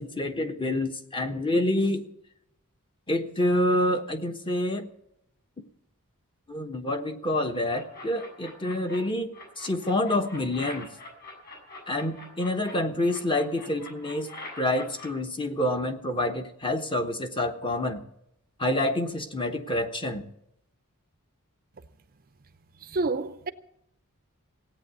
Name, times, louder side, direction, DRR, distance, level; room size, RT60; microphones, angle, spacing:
voice 1, 0.0-2.0 3.1-4.9 5.6-5.7 6.5-10.9 11.9-14.3 14.6-18.0 18.6-20.2, left 1 dB, 20° left, 1.1 m, -27 dB
sound 1, 7.7-9.0 9.3-12.7 13.1-15.1, left 2 dB, 45° left, 7.2 m, -43 dB
voice 2, 22.8-23.5, right 3 dB, 40° right, 0.6 m, -28 dB
17.0 x 8.9 x 8.3 m
head